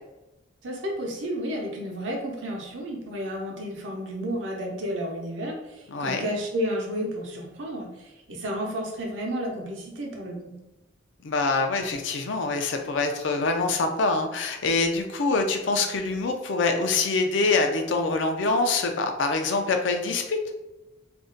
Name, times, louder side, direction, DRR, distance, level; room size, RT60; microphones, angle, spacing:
voice 1, 0.6-10.5, equal, 85° right, 0 dB, 0.7 m, -32 dB
voice 2, 5.9-6.2 11.2-20.4, left 3 dB, 75° left, 4 dB, 0.4 m, -25 dB
2.6 x 2.1 x 3.8 m, 1.0 s
head